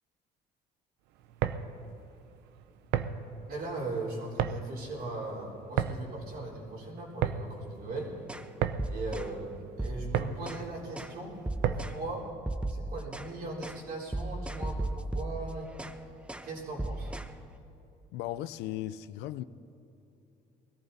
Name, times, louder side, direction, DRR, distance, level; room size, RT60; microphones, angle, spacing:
sound 1, 1.2-12.1, right 10 dB, 85° right, 0.6 m, -35 dB
voice 1, 3.5-8.1 8.8-11.4 11.6-12.3 12.7-15.7 16.4-17.1, right 2 dB, 65° right, 3.8 m, -39 dB
sound 2, 8.3-8.5 8.8-9.3 9.8-10.6 11.0-11.1 11.5-12.0 12.5-13.3 13.6-13.8 14.1-16.0 16.3-16.5 16.8-17.3, right 2 dB, 5° right, 0.6 m, -36 dB
voice 2, 18.1-19.4, left 13 dB, 85° left, 0.5 m, -36 dB
20.5 x 14.0 x 4.1 m
cardioid pair, 110°, 17 cm